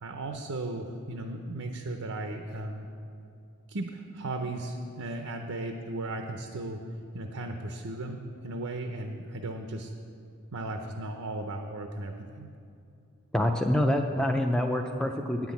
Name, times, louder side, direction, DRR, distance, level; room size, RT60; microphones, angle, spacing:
voice 1, 0.0-2.9 3.7-6.8 7.1-9.9 10.5-12.5, right 2 dB, 80° right, 4 dB, 0.7 m, -36 dB
voice 2, 13.3-15.5, left 1 dB, 5° left, 2 dB, 0.4 m, -26 dB
9.4 x 6.0 x 8.3 m, 2.6 s
head